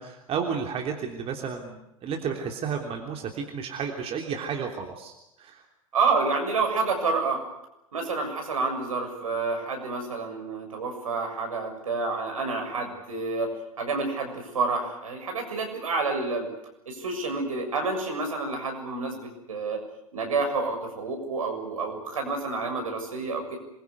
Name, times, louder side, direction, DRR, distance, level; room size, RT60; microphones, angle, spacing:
voice 1, 0.0-5.6, right 6 dB, 35° right, 2 dB, 3.4 m, -32 dB
voice 2, 5.9-7.4 7.9-16.5 16.9-19.8 20.1-23.6, right 4 dB, 70° right, 3 dB, 7.0 m, -29 dB
27.0 x 22.5 x 8.2 m, 0.86 s
figure-of-eight pair, 85°, 18 cm